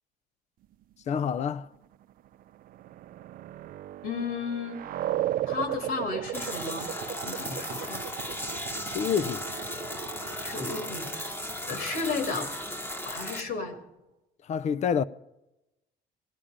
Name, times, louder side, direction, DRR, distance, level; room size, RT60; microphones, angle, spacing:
voice 1, 1.1-1.7 8.9-9.5 14.4-15.0, left 7 dB, 40° left, 0.5 m, -27 dB
sound 1, 2.3-13.7, right 13 dB, 55° right, 0.4 m, -37 dB
voice 2, 4.0-4.8 5.5-6.9 7.2-8.0 10.4-11.1 11.6-12.5 13.1-13.8, left 4 dB, 65° left, 2.5 m, -33 dB
sound 2, 6.3-13.4, left 1 dB, 15° left, 1.1 m, -36 dB
17.5 x 11.0 x 5.0 m
cardioid pair, 110°, 17 cm